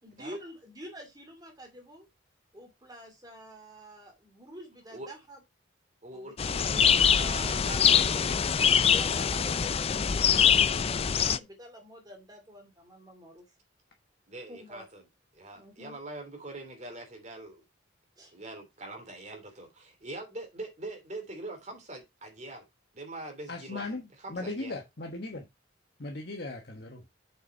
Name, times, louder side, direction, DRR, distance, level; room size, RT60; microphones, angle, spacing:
voice 1, 0.0-2.1 2.5-5.4 6.1-7.1 8.8-13.5 14.5-14.8 15.6-16.0 18.2-18.3, equal, 20° right, 2.5 m, -48 dB
voice 2, 6.0-8.5 14.3-15.0 15.3-17.6 18.3-22.6 22.9-24.8, right 2 dB, 35° right, 3.2 m, -43 dB
sound 1, 6.4-11.4, left 8 dB, 30° left, 0.4 m, -24 dB
voice 3, 23.5-24.0 24.3-25.4 26.0-27.0, left 2 dB, 55° left, 1.2 m, -37 dB
6.9 x 5.8 x 4.4 m
head